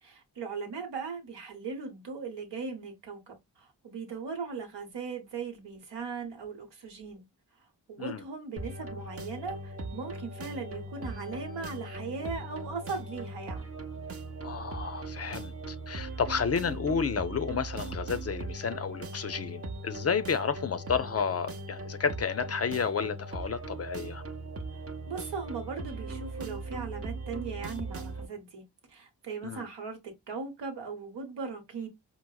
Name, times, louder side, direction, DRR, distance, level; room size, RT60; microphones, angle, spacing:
voice 1, 0.0-7.2 7.9-13.6 25.1-28.6 28.9-31.9, right 5 dB, 85° right, 1.0 m, -38 dB
sound 1, 8.6-28.3, right 2 dB, 35° right, 0.6 m, -39 dB
voice 2, 14.4-24.2 29.4-29.7, left 6 dB, 40° left, 0.4 m, -31 dB
4.6 x 2.0 x 2.2 m
cardioid pair, 55°, 41 cm